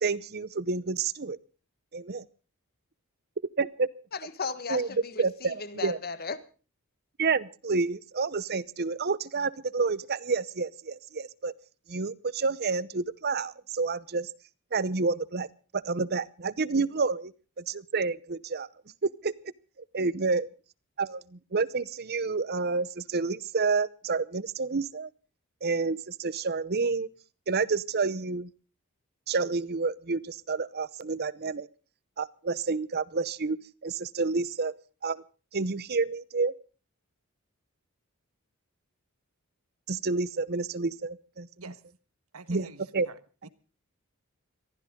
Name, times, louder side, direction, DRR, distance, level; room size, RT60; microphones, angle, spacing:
voice 1, 0.0-1.4 1.9-2.3 3.6-3.9 4.7-4.9 5.2-6.0 7.2-11.5 11.9-14.3 14.7-15.5 15.7-17.3 17.6-18.7 19.0-19.3 19.9-20.5 21.0-25.1 25.6-27.1 27.5-28.5 29.3-31.7 32.2-34.7 35.0-35.2 35.5-36.5 39.9-41.5 42.5-42.7 42.9-43.1, right 4 dB, 45° right, 0.8 m, -29 dB
voice 2, 4.1-6.4 16.7-16.8, left 5 dB, 45° left, 1.5 m, -36 dB
voice 3, 42.3-43.5, right 4 dB, 85° right, 1.5 m, -47 dB
23.0 x 15.0 x 3.7 m
head